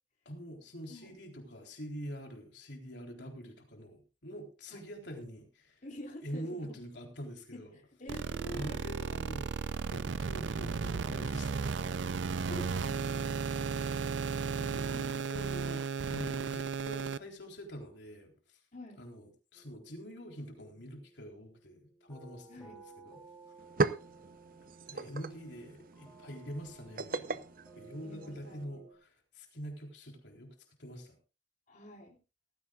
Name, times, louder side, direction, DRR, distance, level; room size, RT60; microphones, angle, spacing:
voice 1, 0.3-5.8 6.2-7.8 8.5-9.5 9.9-11.8 14.6-18.6 19.0-23.2 24.9-27.4 27.8-31.2, equal, 70° left, 2 dB, 3.8 m, -45 dB
voice 2, 5.8-6.8 7.5-8.8 12.4-14.0 18.7-19.0 22.5-22.8 28.0-28.8 31.7-32.2, equal, 45° left, -1 dB, 3.6 m, -47 dB
sound 1, 8.1-17.2, right 5 dB, 80° right, 0.5 m, -34 dB
sound 2, 19.5-28.9, right 4 dB, 5° left, 4.1 m, -57 dB
sound 3, 23.1-23.2 23.5-28.6, right 3 dB, 50° right, 0.8 m, -38 dB
18.0 x 15.0 x 2.4 m, 0.30 s
head